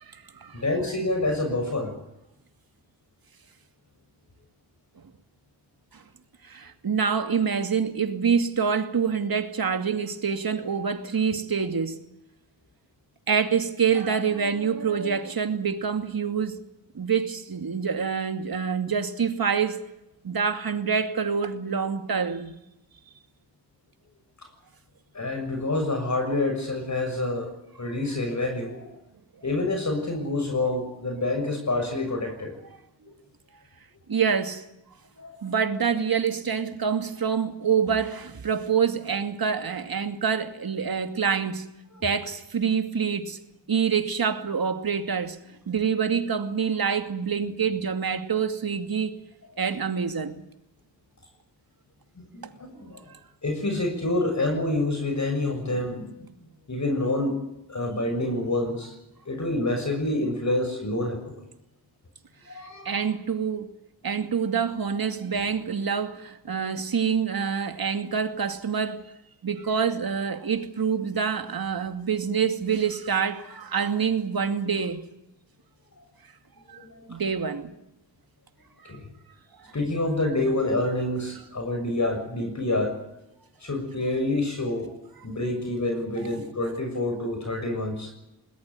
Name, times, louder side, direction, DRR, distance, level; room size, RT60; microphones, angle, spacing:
voice 1, 0.0-0.6 5.9-6.0 6.4-12.0 13.3-16.6 16.9-19.8 20.2-22.6 34.1-34.6 35.4-41.7 42.0-43.4 43.7-45.4 45.7-49.2 49.6-50.4 62.8-63.7 64.0-69.0 69.4-75.0 76.7-76.8 77.1-77.7, right 6 dB, 50° right, 2.4 m, -26 dB
voice 2, 0.5-1.9 25.1-27.5 27.8-28.9 29.4-32.6 35.2-35.4 42.0-42.1 52.2-53.0 53.4-56.3 56.7-57.4 57.7-58.9 59.2-61.4 62.5-63.0 66.5-66.6 76.7-77.2 78.8-79.1 79.7-83.0 83.6-84.9 85.2-88.1, left 2 dB, 40° left, 6.7 m, -27 dB
21.0 x 19.0 x 9.3 m
cardioid pair, 65°, 44 cm